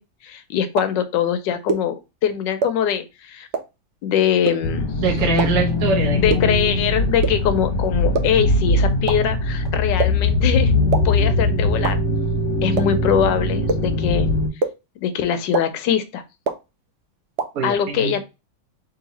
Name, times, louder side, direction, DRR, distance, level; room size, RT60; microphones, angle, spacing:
voice 1, 0.2-1.9 2.2-3.5 4.0-4.9 6.1-10.7 11.0-12.0 12.6-14.3 15.0-16.2 17.6-18.2, left 9 dB, 75° left, 9 dB, 1.3 m, -22 dB
sound 1, 0.8-0.9 1.7-1.8 2.6-2.7 3.5-3.6 4.5-4.6 5.4-5.5 6.3-6.4 7.2-7.3 8.1-8.2 9.1-9.2 10.0-10.1 10.9-11.0 11.8-11.9 12.8-12.9 13.7-13.8 14.6-14.7 15.5-15.6 16.5-16.6 17.4-17.5, right 4 dB, 85° right, 0.6 m, -20 dB
sound 2, 4.6-14.5, left 2 dB, 45° left, 1.2 m, -21 dB
voice 2, 5.0-6.5 17.5-18.2, right 4 dB, 55° right, 0 dB, 1.5 m, -23 dB
3.8 x 3.1 x 4.1 m, 0.26 s
omnidirectional pair, 2.1 m